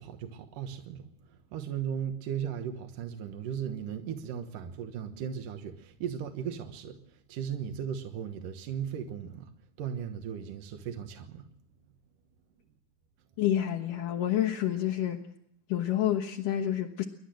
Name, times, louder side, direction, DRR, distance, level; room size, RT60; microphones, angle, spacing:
voice 1, 0.0-9.5 9.8-11.5, right 8 dB, 75° right, 2.8 m, -37 dB
voice 2, 13.4-15.2 15.7-17.1, left 11 dB, 75° left, 2.7 m, -28 dB
30.0 x 12.0 x 7.7 m
omnidirectional pair, 3.8 m